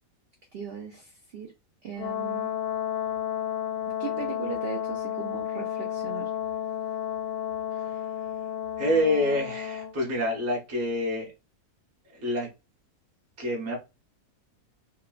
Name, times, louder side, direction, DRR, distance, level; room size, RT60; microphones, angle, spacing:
voice 1, 0.5-1.5 1.8-2.6 4.0-6.3, right 7 dB, 80° right, 2 dB, 0.5 m, -38 dB
Brass instrument, 2.0-9.9, left 10 dB, 85° left, 1.2 m, -32 dB
voice 2, 8.8-11.3 12.1-12.5 13.4-13.8, left 1 dB, 15° right, -2 dB, 0.6 m, -27 dB
3.0 x 2.2 x 2.3 m, 0.27 s
omnidirectional pair, 1.6 m